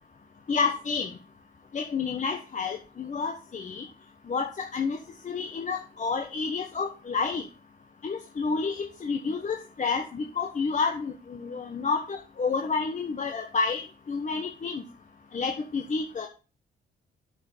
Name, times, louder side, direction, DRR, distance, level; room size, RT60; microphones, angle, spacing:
voice 1, 0.5-1.1 1.7-3.8 4.3-5.0 5.2-7.4 8.0-14.8 15.3-16.3, left 4 dB, 40° left, 4 dB, 1.2 m, -30 dB
8.3 x 6.0 x 6.7 m, 0.35 s
cardioid pair, 90°, 20 cm